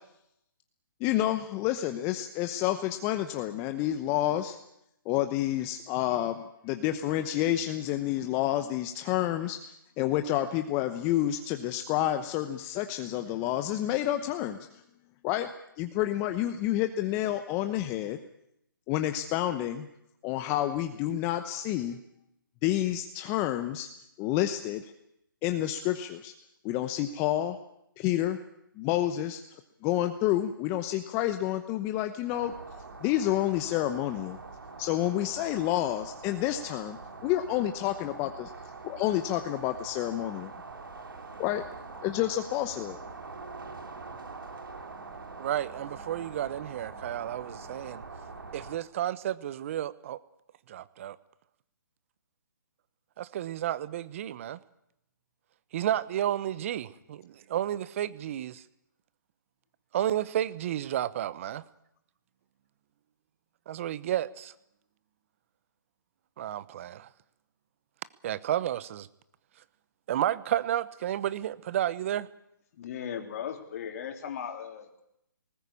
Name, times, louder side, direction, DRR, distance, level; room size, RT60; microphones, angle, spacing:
voice 1, 1.0-4.6 5.1-14.6 15.2-15.5 15.8-18.2 18.9-19.9 20.2-22.0 22.6-23.9 24.2-24.9 25.4-26.3 26.6-27.6 28.0-28.4 28.8-32.5 33.0-34.4 34.8-38.5 38.8-40.5 41.4-41.6 42.0-43.0, left 13 dB, 20° left, 0.9 m, -29 dB
sound 1, 32.3-48.8, right 4 dB, 75° right, 3.5 m, -44 dB
voice 2, 45.4-48.0 48.5-50.2 50.7-51.2 53.2-54.6 55.7-58.6 59.9-61.6 63.7-64.5 66.4-67.1 68.2-69.1 70.1-72.3, right 11 dB, 40° right, 0.9 m, -31 dB
voice 3, 72.8-75.0, left 8 dB, 45° left, 3.5 m, -37 dB
19.5 x 19.5 x 8.5 m
hypercardioid pair, 150°, 11 cm